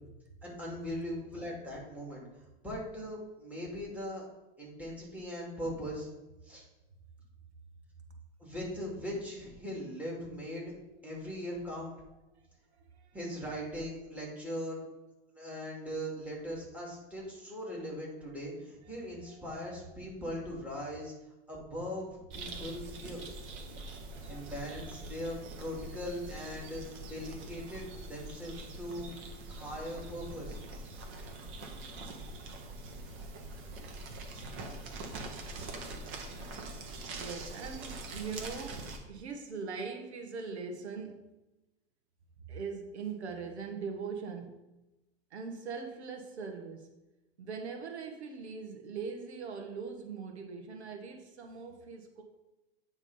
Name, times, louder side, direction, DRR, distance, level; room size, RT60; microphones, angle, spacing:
voice 1, 0.4-2.2 2.6-4.3 4.6-6.1 6.4-6.7 8.4-10.7 11.0-11.9 13.1-14.8 15.3-21.1 21.5-23.2 24.3-29.1 29.5-30.6, equal, 5° right, -3 dB, 2.6 m, -40 dB
voice 2, 12.8-13.3 18.9-19.0 19.3-19.7 24.1-24.5 24.8-24.9 26.4-26.7 37.0-41.3 42.5-44.6 45.3-46.9 47.4-52.2, right 5 dB, 85° right, 4 dB, 1.4 m, -41 dB
sound 1, 22.3-39.0, right 2 dB, 40° right, 1.5 m, -44 dB
9.2 x 3.6 x 5.5 m, 1.0 s
hypercardioid pair, 120°, 32 cm